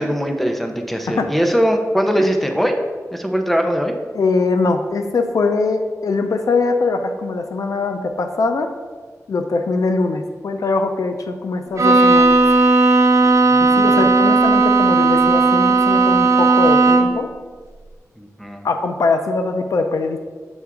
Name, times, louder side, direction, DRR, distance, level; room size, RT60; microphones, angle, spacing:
voice 1, 0.0-2.8 3.1-3.9 13.2-14.1 18.2-18.7, equal, 5° left, 4 dB, 0.6 m, -21 dB
voice 2, 4.1-8.7 9.3-12.4 13.8-17.3 18.6-20.2, left 3 dB, 75° left, 6 dB, 0.5 m, -21 dB
Bowed string instrument, 11.8-17.3, right 3 dB, 60° right, 0.5 m, -14 dB
7.2 x 3.5 x 4.8 m, 1.5 s
wide cardioid pair, 125°, 6 cm